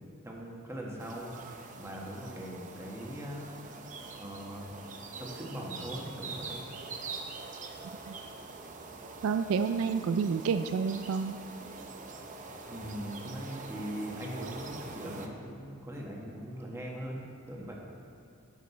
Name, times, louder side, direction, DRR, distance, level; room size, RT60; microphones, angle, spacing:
voice 1, 0.2-3.9 4.2-4.7 5.2-6.6 12.7-17.8, equal, 15° right, -2 dB, 1.3 m, -41 dB
sound 1, 1.0-15.3, right 3 dB, 35° right, 0.6 m, -44 dB
voice 2, 9.2-11.4, right 6 dB, 70° right, 10 dB, 0.3 m, -29 dB
11.0 x 6.5 x 4.1 m, 2.4 s
head